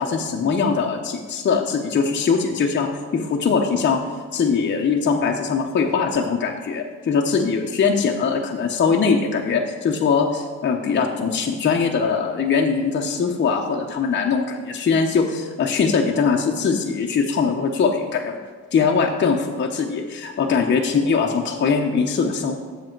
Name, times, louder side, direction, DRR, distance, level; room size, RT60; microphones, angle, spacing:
voice 1, 0.0-4.0 4.3-18.4 18.7-22.6, left 5 dB, 40° left, 1 dB, 0.8 m, -21 dB
7.6 x 6.8 x 4.5 m, 1.5 s
cardioid pair, 90°, 30 cm